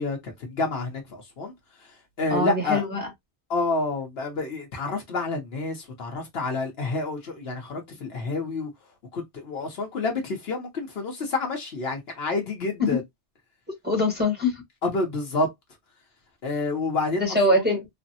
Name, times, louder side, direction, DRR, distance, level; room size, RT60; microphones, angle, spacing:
voice 1, 0.0-1.5 2.2-2.8 3.5-8.7 9.1-13.0 14.8-15.5 16.4-17.2 17.5-17.6, left 3 dB, 65° left, 1.0 m, -28 dB
voice 2, 2.3-3.1 12.8-13.0 13.8-14.6 17.2-17.9, left 1 dB, 10° right, 1.1 m, -23 dB
3.3 x 2.1 x 2.6 m
omnidirectional pair, 1.2 m